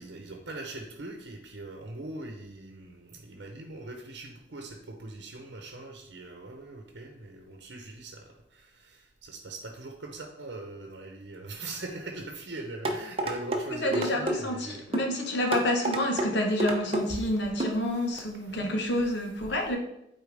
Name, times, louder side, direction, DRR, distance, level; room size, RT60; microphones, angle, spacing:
voice 1, 0.0-8.2 8.5-14.8 17.1-17.2 17.9-18.1 18.4-18.6 19.4-19.5, right 2 dB, 80° right, 3 dB, 0.8 m, -41 dB
sound 1, 12.9-13.6 13.9-14.4 14.9-15.1 15.5-16.3 16.6-17.0 17.6-17.8 18.2-18.3, right 1 dB, 30° right, 0.7 m, -28 dB
voice 2, 13.8-19.8, left 1 dB, 80° left, 3 dB, 1.1 m, -28 dB
8.1 x 4.4 x 3.4 m, 0.82 s
head